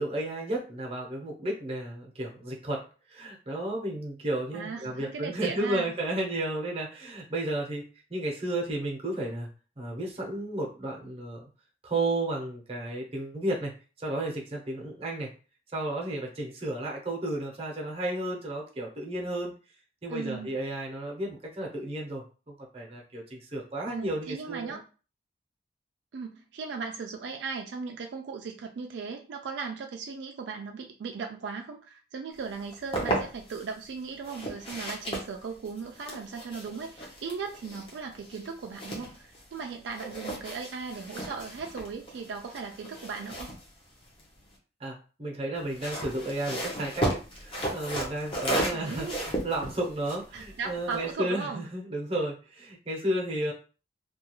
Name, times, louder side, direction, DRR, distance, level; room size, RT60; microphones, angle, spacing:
voice 1, 0.0-9.5 9.8-11.5 11.8-13.7 14.0-15.3 15.7-19.5 20.0-24.8 44.8-53.5, right 1 dB, 30° right, 0 dB, 0.7 m, -33 dB
voice 2, 4.5-5.9 20.1-20.6 23.9-24.8 26.1-43.5 48.7-49.2 50.3-51.7, right 5 dB, 75° right, 3 dB, 0.3 m, -37 dB
sound 1, 32.5-33.7 34.2-39.6 39.9-44.6 45.6-51.1, right 1 dB, 30° left, 0.6 m, -35 dB
2.3 x 2.3 x 2.9 m, 0.35 s
head